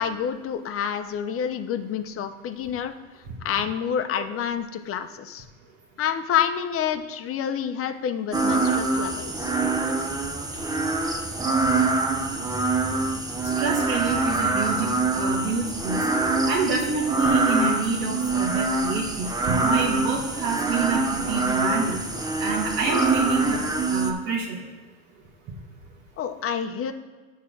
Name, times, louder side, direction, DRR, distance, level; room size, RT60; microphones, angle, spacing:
voice 1, 0.0-2.9 3.4-5.4 6.0-9.5 26.2-26.9, left 8 dB, 35° left, 7 dB, 0.7 m, -28 dB
sound 1, 8.3-24.1, right 3 dB, 10° right, 0.7 m, -25 dB
voice 2, 13.6-16.0 16.5-19.3 19.6-22.0 22.4-23.6 23.9-24.6, right 4 dB, 65° right, -4 dB, 1.5 m, -27 dB
9.8 x 3.7 x 6.1 m, 1.3 s
supercardioid pair, 100°, 39 cm